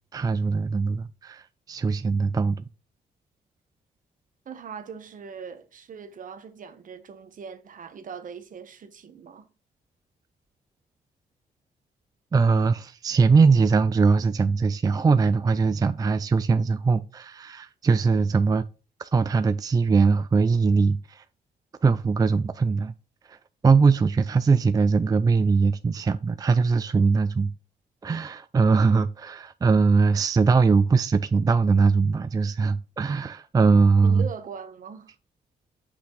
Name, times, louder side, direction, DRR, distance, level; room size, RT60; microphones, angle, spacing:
voice 1, 0.1-2.6 12.3-18.6 19.0-21.2 21.8-22.9 23.3-23.4 23.6-27.5 28.0-34.3, right 4 dB, 25° right, 0.4 m, -21 dB
voice 2, 4.4-9.5 34.0-35.1, right 6 dB, 55° right, 1.1 m, -40 dB
6.1 x 5.9 x 3.2 m
cardioid pair, 100°, 16 cm